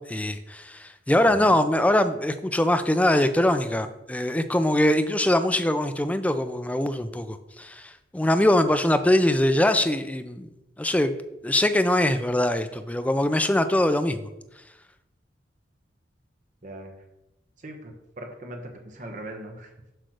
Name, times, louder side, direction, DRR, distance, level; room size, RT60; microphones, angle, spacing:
voice 1, 0.1-10.5 10.8-11.2 11.4-14.3, left 1 dB, 10° left, 9 dB, 0.4 m, -22 dB
voice 2, 16.6-16.9 17.6-19.9, right 1 dB, 45° right, 3 dB, 1.1 m, -40 dB
7.8 x 3.2 x 6.3 m, 0.92 s
head